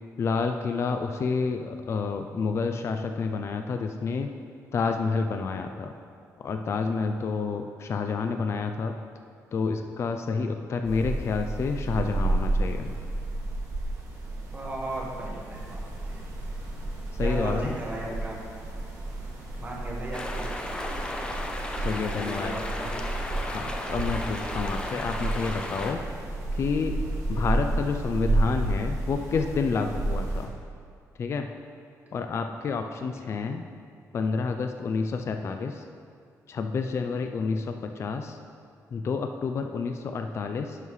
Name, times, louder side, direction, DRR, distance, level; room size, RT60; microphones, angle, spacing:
voice 1, 0.2-4.3 4.7-5.9 6.4-8.9 9.5-12.9 17.2-17.8 21.8-22.6 23.4-26.0 26.5-27.0 27.3-30.5 31.2-31.5 32.1-33.6 34.1-35.8 36.5-38.4 38.9-40.8, left 4 dB, 45° left, 6 dB, 0.4 m, -29 dB
sound 1, 10.8-30.5, right 2 dB, 65° right, 2.0 m, -31 dB
voice 2, 14.5-16.2 17.2-18.4 19.6-20.5 22.1-23.0 27.6-27.7 33.0-33.1, right 1 dB, 30° right, -3 dB, 1.4 m, -36 dB
sound 2, 20.1-25.9, left 1 dB, 15° left, 0.7 m, -35 dB
11.0 x 5.5 x 3.1 m, 2.2 s
cardioid pair, 120°, 6 cm